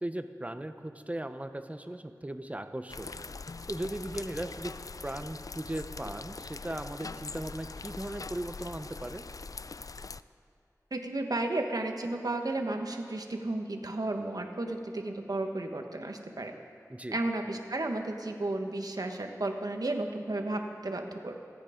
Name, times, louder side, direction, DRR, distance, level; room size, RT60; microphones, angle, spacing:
voice 1, 0.0-3.3 3.7-4.7 5.0-9.2 16.9-17.2, right 1 dB, 20° right, 9 dB, 0.9 m, -38 dB
sound 1, 2.9-10.2, left 4 dB, 65° left, 0.4 m, -42 dB
voice 2, 10.9-16.5 17.1-21.3, right 2 dB, 75° right, 4 dB, 1.4 m, -33 dB
27.5 x 9.5 x 5.1 m, 2.4 s
wide cardioid pair, 50°, 7 cm